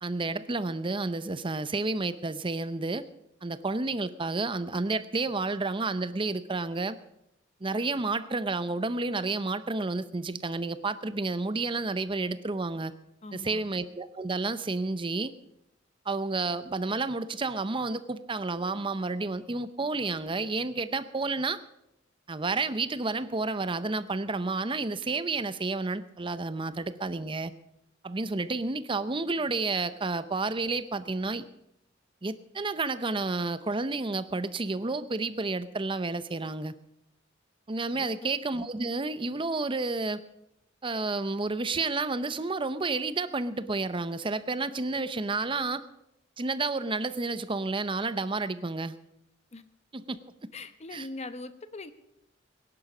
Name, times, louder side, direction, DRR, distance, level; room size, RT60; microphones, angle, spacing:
voice 1, 0.0-3.0 3.4-7.0 7.6-12.9 13.3-15.3 16.1-21.6 22.3-27.5 28.0-31.4 32.2-36.7 37.7-40.2 40.8-45.8 46.4-49.0 49.9-50.2 50.9-51.1, right 3 dB, 25° right, 13 dB, 0.7 m, -30 dB
voice 2, 13.2-13.6 37.9-38.1 49.5-49.6 50.5-51.9, left 2 dB, 35° left, 11 dB, 0.9 m, -41 dB
17.5 x 11.0 x 6.1 m, 0.83 s
head